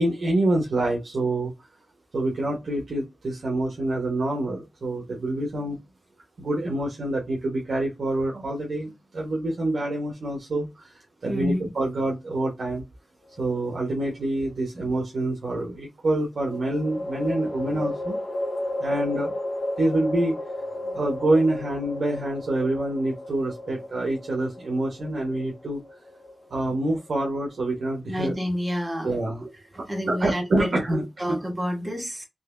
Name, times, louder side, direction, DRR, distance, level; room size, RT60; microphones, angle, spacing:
voice 1, 0.0-1.5 2.1-5.8 6.4-12.8 13.4-18.2 18.8-19.4 19.8-20.4 20.9-25.8 26.5-28.3 29.0-29.4 30.1-31.4, right 1 dB, 70° right, 0.9 m, -26 dB
voice 2, 11.2-11.6 28.1-29.5 29.9-32.2, equal, 15° right, 1.4 m, -29 dB
sound 1, 13.3-14.1 16.4-27.7, left 1 dB, 50° left, 1.3 m, -34 dB
4.0 x 2.9 x 2.4 m
wide cardioid pair, 135°, 0 cm